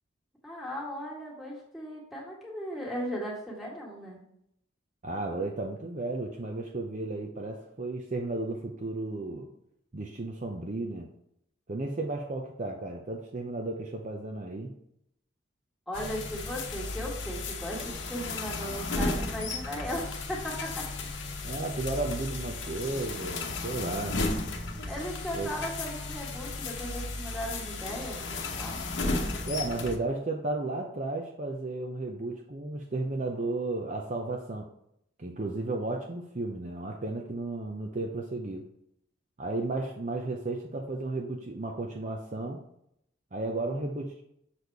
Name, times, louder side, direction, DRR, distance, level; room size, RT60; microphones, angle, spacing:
voice 1, 0.4-4.2 15.9-21.3 24.8-28.8, equal, ahead, -4 dB, 1.7 m, -37 dB
voice 2, 5.0-9.5 9.9-11.1 11.7-14.7 21.4-24.2 25.3-25.5 29.4-34.7 35.2-38.6 39.4-42.6 43.3-44.2, right 2 dB, 40° right, 2 dB, 0.6 m, -33 dB
sound 1, 15.9-30.0, left 2 dB, 65° left, 1.0 m, -34 dB
6.7 x 4.2 x 4.7 m, 0.74 s
head